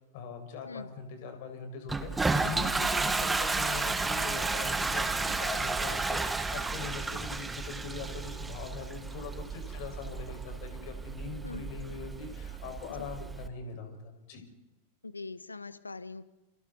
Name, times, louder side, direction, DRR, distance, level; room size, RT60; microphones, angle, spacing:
voice 1, 0.1-14.4, left 5 dB, 50° left, 5 dB, 5.4 m, -42 dB
Toilet flush, 1.9-13.5, right 3 dB, 10° right, 1.5 m, -32 dB
voice 2, 15.0-16.2, left 3 dB, 80° left, 15 dB, 1.1 m, -42 dB
29.0 x 27.0 x 4.1 m, 1.0 s
figure-of-eight pair, 90°, 0 cm